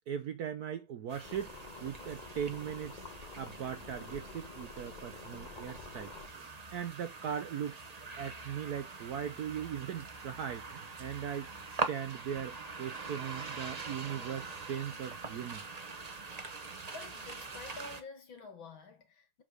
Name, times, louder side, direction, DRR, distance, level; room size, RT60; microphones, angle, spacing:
voice 1, 0.1-3.0 3.4-7.9 8.2-15.7, right 8 dB, 65° right, 1.0 m, -39 dB
sound 1, 1.1-18.0, right 4 dB, 40° right, 0.5 m, -43 dB
sound 2, 1.2-6.3, left 4 dB, 35° left, 0.8 m, -49 dB
voice 2, 16.9-19.4, left 3 dB, 70° left, 2.7 m, -49 dB
7.4 x 3.7 x 6.4 m
omnidirectional pair, 2.2 m